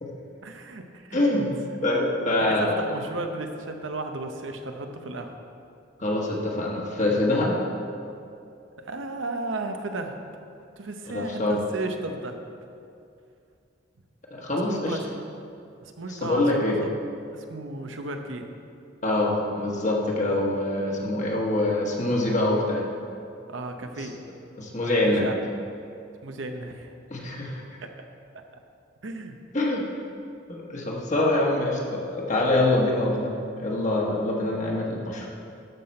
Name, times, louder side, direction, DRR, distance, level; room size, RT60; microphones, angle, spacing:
voice 1, 0.4-1.2 2.4-5.4 8.8-10.2 10.8-12.4 14.7-15.2 15.8-16.9 17.3-18.5 23.5-24.2 24.8-25.4 26.2-26.9 27.8-27.9 29.0-29.4, right 2 dB, 85° right, 5 dB, 0.8 m, -34 dB
voice 2, 1.1-1.5 1.8-2.8 6.0-7.6 11.1-11.6 14.3-15.0 16.1-16.8 19.0-22.8 24.0-24.1 24.6-25.3 27.1-27.6 29.5-29.8 30.5-35.3, left 2 dB, 40° left, -2 dB, 1.2 m, -25 dB
12.0 x 5.8 x 4.3 m, 2.5 s
head